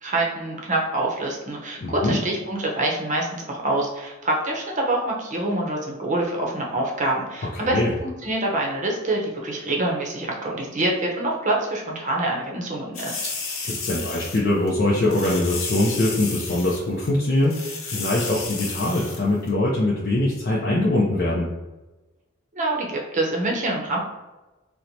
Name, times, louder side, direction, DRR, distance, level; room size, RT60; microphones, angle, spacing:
voice 1, 0.0-13.3 22.5-24.0, right 2 dB, 40° right, -1 dB, 0.7 m, -26 dB
voice 2, 1.8-2.2 7.5-7.9 13.6-21.5, left 1 dB, 50° left, -4 dB, 0.5 m, -22 dB
sound 1, 12.9-14.4 14.7-14.8 15.0-16.8 17.1-17.2 17.4-19.2 19.5-19.6, left 4 dB, 90° left, 0.7 m, -32 dB
4.3 x 2.1 x 2.6 m, 1.1 s
head